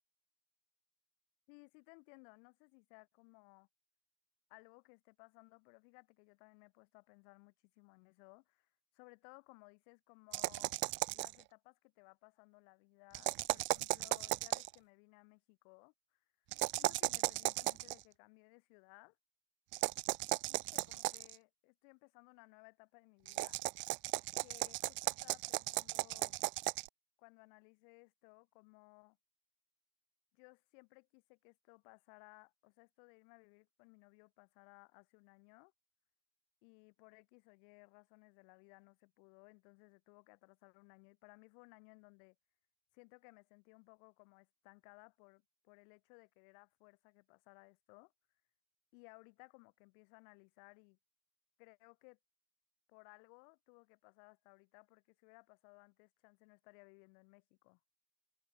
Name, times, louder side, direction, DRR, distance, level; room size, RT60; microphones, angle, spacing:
voice 1, 1.5-3.7 4.5-10.8 11.1-16.2 16.8-19.2 20.5-23.6 24.4-26.4 27.2-29.2 30.3-35.7 36.6-42.4 42.9-48.1 48.9-51.0 51.6-52.2 52.9-57.8, left 40 dB or more, 85° left, 5.8 m, -61 dB
sound 1, 10.3-11.4 13.1-14.7 16.5-17.9 19.7-21.3 23.3-26.9, right 21 dB, 70° right, 0.5 m, -36 dB
supercardioid pair, 75°, 20 cm